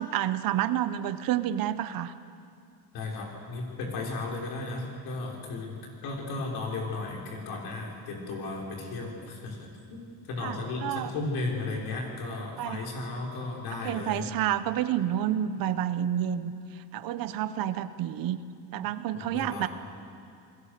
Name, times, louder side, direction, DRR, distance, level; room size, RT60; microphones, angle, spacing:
voice 1, 0.0-2.1 10.4-11.1 12.6-12.8 13.7-18.4 18.7-19.7, right 11 dB, 60° right, 12 dB, 1.0 m, -29 dB
voice 2, 2.9-14.3 19.1-19.7, left 3 dB, 65° left, 0 dB, 5.9 m, -35 dB
29.5 x 21.5 x 6.8 m, 2.4 s
cardioid pair, 160°, 39 cm